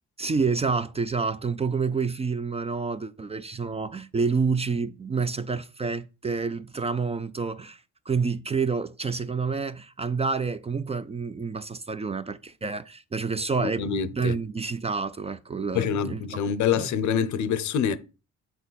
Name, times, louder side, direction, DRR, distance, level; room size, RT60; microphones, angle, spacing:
voice 1, 0.2-7.8 8.1-16.4 16.7-16.9, right 4 dB, 20° right, 0.4 m, -28 dB
voice 2, 13.6-14.4 15.7-18.0, left 7 dB, 70° left, 0.7 m, -26 dB
7.8 x 4.3 x 4.0 m
cardioid pair, 90°, 30 cm